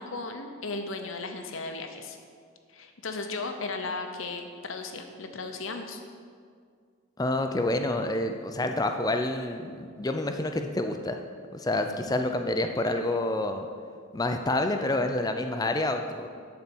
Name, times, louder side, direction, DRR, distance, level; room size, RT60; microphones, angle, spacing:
voice 1, 0.0-2.2 2.7-6.0, left 3 dB, 70° left, 5 dB, 0.8 m, -36 dB
voice 2, 7.2-11.2 11.5-13.7 14.1-16.3, left 2 dB, 20° left, 6 dB, 0.4 m, -28 dB
10.5 x 4.3 x 6.1 m, 2.1 s
head